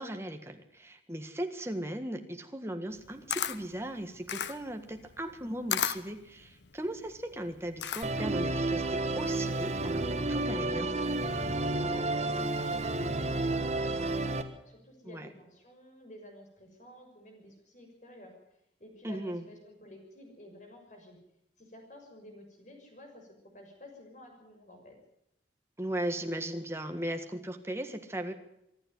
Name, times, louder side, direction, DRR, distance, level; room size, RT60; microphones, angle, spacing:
voice 1, 0.0-10.9 15.0-15.3 19.0-19.4 25.8-28.3, right 1 dB, 15° right, 5 dB, 1.7 m, -37 dB
Camera, 2.9-8.4, left 9 dB, 75° left, 0.9 m, -35 dB
Musical instrument, 8.0-14.4, right 2 dB, 40° right, 1.5 m, -31 dB
voice 2, 11.9-14.3 14.7-18.3 18.8-21.2 21.6-23.3 23.5-25.0, left 1 dB, 40° left, 3 dB, 6.3 m, -52 dB
25.0 x 11.5 x 9.5 m, 0.80 s
head